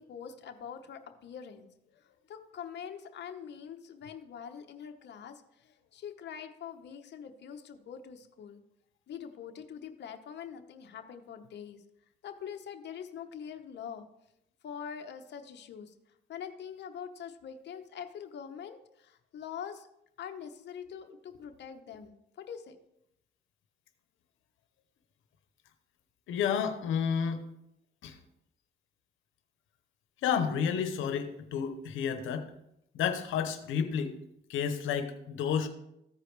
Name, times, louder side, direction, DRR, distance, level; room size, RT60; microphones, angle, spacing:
voice 1, 0.0-1.7 2.3-8.6 9.1-11.8 12.2-14.1 14.6-15.9 16.3-19.9 20.2-22.8, left 8 dB, 60° left, 5 dB, 0.9 m, -44 dB
voice 2, 26.3-27.4 28.0-28.1 30.2-32.5 32.9-34.1 34.5-35.7, left 7 dB, 85° left, 8 dB, 0.9 m, -30 dB
14.5 x 4.8 x 3.3 m, 0.81 s
cardioid pair, 90°, 20 cm